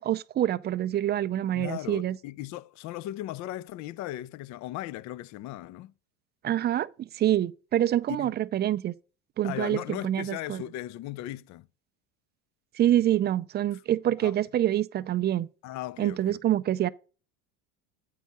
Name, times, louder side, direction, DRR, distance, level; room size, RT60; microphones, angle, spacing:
voice 1, 0.0-2.2 6.4-8.9 9.4-10.6 12.7-15.5 16.0-16.9, right 12 dB, 25° right, 0.4 m, -26 dB
voice 2, 1.5-5.9 8.1-8.3 9.4-11.7 13.7-13.8 14.2-14.3 15.6-16.4, left 14 dB, 45° left, 0.4 m, -37 dB
8.2 x 4.7 x 5.3 m
supercardioid pair, 100°, 39 cm